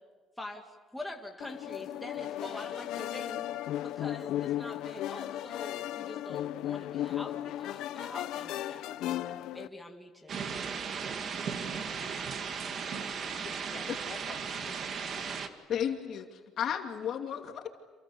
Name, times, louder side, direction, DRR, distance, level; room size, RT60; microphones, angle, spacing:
voice 1, 0.4-3.5 3.8-8.9 9.5-10.4, left 2 dB, 5° left, 1 dB, 2.1 m, -44 dB
sound 1, 1.4-9.7, left 13 dB, 75° left, 0.8 m, -36 dB
sound 2, 10.3-15.5, right 6 dB, 45° right, 2.2 m, -36 dB
voice 2, 12.0-12.5 12.9-14.9 15.1-15.4, left 6 dB, 35° left, 2 dB, 3.5 m, -51 dB
voice 3, 15.7-17.7, left 9 dB, 50° left, 4 dB, 2.6 m, -33 dB
29.5 x 28.0 x 7.2 m, 1.4 s
cardioid pair, 140°, 0 cm